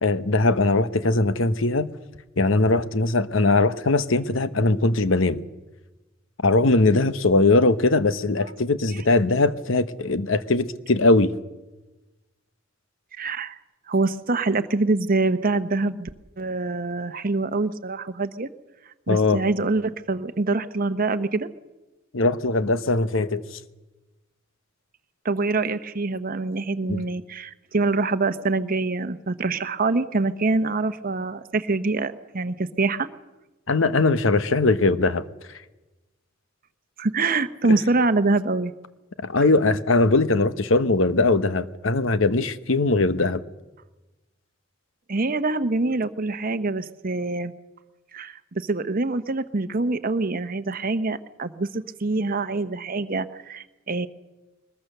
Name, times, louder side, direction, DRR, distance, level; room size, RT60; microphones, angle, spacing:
voice 1, 0.0-1.9 2.4-5.4 6.4-11.3 19.1-19.4 22.1-23.4 26.9-27.0 33.7-35.2 37.7-37.8 39.2-43.4, left 2 dB, 75° left, 1.0 m, -20 dB
voice 2, 13.2-13.6 13.9-16.1 16.4-18.5 19.1-21.5 25.2-33.1 37.0-38.7 45.1-47.5 48.1-54.1, right 3 dB, 45° right, 1.0 m, -25 dB
22.0 x 20.5 x 6.7 m
head